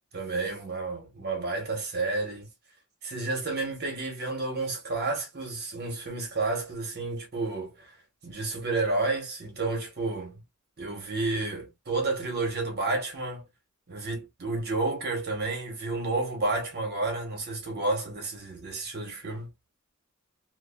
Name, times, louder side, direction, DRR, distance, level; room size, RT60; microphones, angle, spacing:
voice 1, 0.1-2.5 3.0-8.0 8.2-10.4 10.8-13.4 13.9-19.5, right 3 dB, 50° right, 1.1 m, -31 dB
2.5 x 2.4 x 2.3 m
head